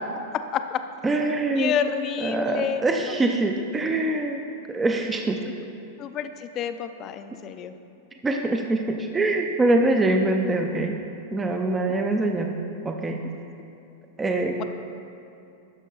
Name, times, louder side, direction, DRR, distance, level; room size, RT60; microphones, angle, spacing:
voice 1, 1.0-4.4 4.7-5.4 8.2-11.0 11.3-12.6 12.8-13.2 14.2-14.6, right 2 dB, 15° right, 3 dB, 0.5 m, -24 dB
voice 2, 1.6-2.8 6.0-7.7 14.6-14.7, left 9 dB, 35° left, 9 dB, 0.5 m, -29 dB
11.5 x 5.3 x 4.0 m, 2.7 s
hypercardioid pair, 115°, 0 cm